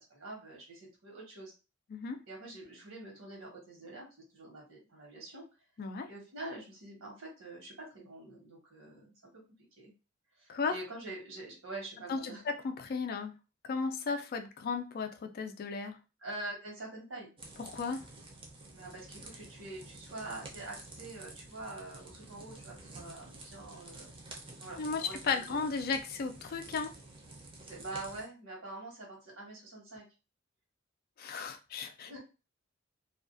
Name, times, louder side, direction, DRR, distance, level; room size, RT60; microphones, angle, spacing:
voice 1, 0.0-1.5 2.3-5.4 6.1-9.4 9.8-9.9 10.4-12.4 16.2-17.3 18.7-24.1 24.6-25.2 25.5-25.6 27.7-30.0 32.1-32.2, right 2 dB, 80° right, -2 dB, 1.1 m, -45 dB
voice 2, 5.8-6.1 10.5-10.8 12.1-13.3 13.6-16.0 17.6-18.1 24.8-26.9 31.2-32.2, left 5 dB, 50° left, 7 dB, 0.4 m, -35 dB
sound 1, 17.4-28.2, right 2 dB, 25° right, 0.6 m, -50 dB
2.4 x 2.2 x 2.5 m, 0.31 s
head